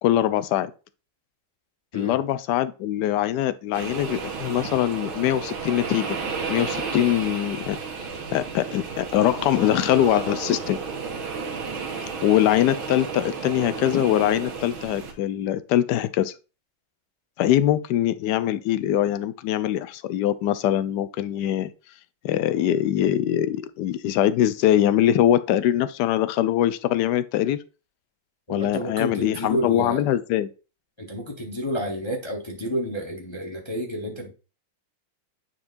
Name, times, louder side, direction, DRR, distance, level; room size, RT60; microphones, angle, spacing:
voice 1, 0.0-0.7 1.9-6.2 6.5-7.8 8.3-10.8 12.2-16.3 17.4-21.7 22.2-27.6 28.5-30.5, left 12 dB, 75° left, 1.0 m, -22 dB
sound 1, 3.7-15.1, right 5 dB, 85° right, 2.0 m, -32 dB
voice 2, 28.5-30.0 31.0-34.3, equal, 30° left, 0.5 m, -30 dB
9.7 x 4.4 x 2.5 m
omnidirectional pair, 2.2 m